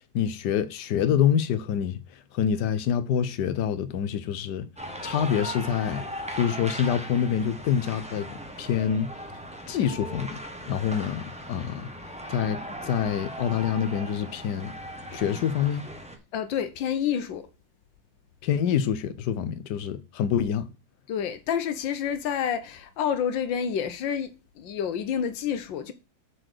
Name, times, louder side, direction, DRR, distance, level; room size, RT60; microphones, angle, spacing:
voice 1, 0.1-2.0 2.3-4.7 5.0-6.0 6.3-9.1 9.7-11.9 12.3-14.7 15.1-15.9 18.4-20.7, left 8 dB, 70° left, 1.4 m, -26 dB
sound 1, 4.8-16.2, equal, 5° right, 0.9 m, -38 dB
voice 2, 16.3-17.5 21.1-25.9, left 8 dB, 85° left, 1.6 m, -29 dB
7.5 x 4.2 x 6.6 m
omnidirectional pair, 2.0 m